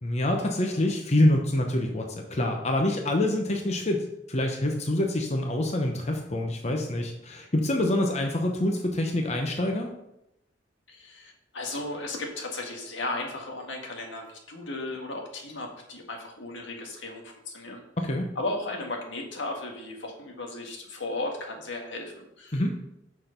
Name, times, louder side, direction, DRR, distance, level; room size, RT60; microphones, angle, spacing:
voice 1, 0.0-9.9 18.0-18.3 22.5-22.7, left 1 dB, 35° left, 2 dB, 0.8 m, -26 dB
voice 2, 10.9-17.8 18.3-22.6, left 2 dB, 85° left, 1 dB, 1.7 m, -35 dB
6.5 x 6.1 x 5.2 m, 0.82 s
head